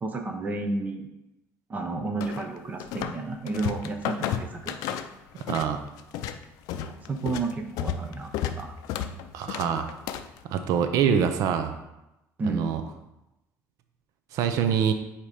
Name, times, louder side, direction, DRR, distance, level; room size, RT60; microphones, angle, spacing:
voice 1, 0.0-1.1 1.7-4.7 6.7-8.3 8.6-8.8 12.4-12.7, right 3 dB, 25° right, 4 dB, 0.6 m, -31 dB
sound 1, 2.2-3.2 3.5-5.7 6.0-10.4, left 9 dB, 80° left, 0.4 m, -32 dB
voice 2, 5.5-5.8 9.3-9.9 10.5-11.7 12.4-12.8 14.3-14.9, right 7 dB, 65° right, 7 dB, 0.6 m, -25 dB
8.3 x 2.9 x 4.8 m, 0.94 s
cardioid pair, 145°, 6 cm